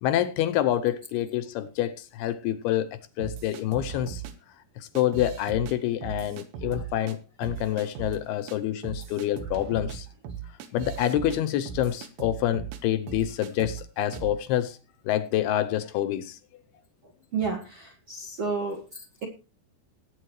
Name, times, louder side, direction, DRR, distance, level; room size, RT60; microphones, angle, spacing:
voice 1, 0.0-4.2 4.8-10.1 10.7-14.8 15.1-16.4, left 12 dB, 80° left, 2.5 m, -27 dB
sound 1, 3.2-4.3 5.0-5.7 6.0-7.2 7.4-8.2 8.5-8.6 8.8-12.8 13.1-13.8 14.1-14.4, right 9 dB, 80° right, 3.4 m, -38 dB
voice 2, 17.3-19.3, right 4 dB, 65° right, 1.5 m, -31 dB
19.0 x 9.2 x 3.1 m
omnidirectional pair, 5.0 m